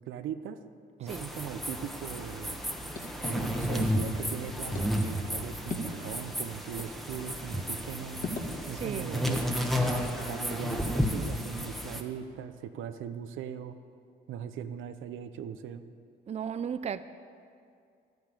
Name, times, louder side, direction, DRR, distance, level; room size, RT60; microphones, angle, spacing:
voice 1, 0.1-0.6 1.0-2.6 3.2-8.3 8.7-9.5 10.2-13.7 14.3-15.8, right 8 dB, 85° right, 0.8 m, -39 dB
sound 1, 1.1-12.0, equal, ahead, 1.2 m, -32 dB
sound 2, 2.1-12.1, left 2 dB, 40° left, 1.8 m, -44 dB
voice 2, 8.7-9.3 9.8-10.3 16.3-17.0, right 7 dB, 35° right, 0.5 m, -36 dB
11.5 x 9.3 x 8.4 m
cardioid pair, 90°, 20 cm